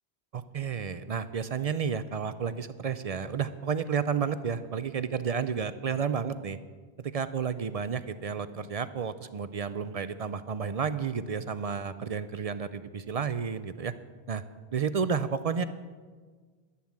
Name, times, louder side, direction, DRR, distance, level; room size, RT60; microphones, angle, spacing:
voice 1, 0.3-6.6 7.0-13.9 14.3-14.4 14.7-15.6, right 6 dB, 50° right, 12 dB, 0.4 m, -31 dB
11.0 x 10.5 x 7.4 m, 1.5 s
omnidirectional pair, 1.1 m